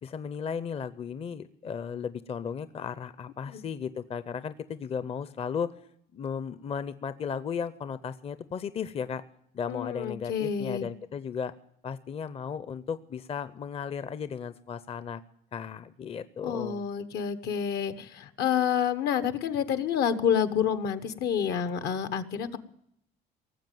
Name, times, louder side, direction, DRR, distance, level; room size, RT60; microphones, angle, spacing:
voice 1, 0.0-5.7 6.1-9.2 9.5-11.5 11.8-15.2 15.5-16.8, left 7 dB, 35° left, 14 dB, 0.6 m, -35 dB
voice 2, 9.7-10.9 16.4-22.6, left 8 dB, 75° left, 12 dB, 1.1 m, -28 dB
18.5 x 7.5 x 9.2 m, 0.74 s
cardioid pair, 110°, 17 cm